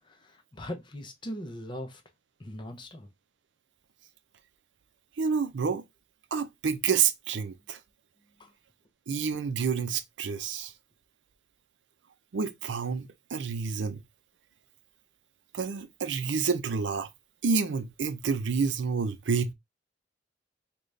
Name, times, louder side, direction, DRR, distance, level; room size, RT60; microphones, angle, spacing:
voice 1, 0.1-2.0 2.4-3.1 8.4-8.5, left 1 dB, 25° left, 0.6 m, -40 dB
voice 2, 5.2-5.8 6.3-7.8 9.1-10.7 12.3-14.0 15.5-17.1 17.4-19.5, right 5 dB, 80° right, 0.5 m, -29 dB
3.9 x 2.3 x 3.2 m
head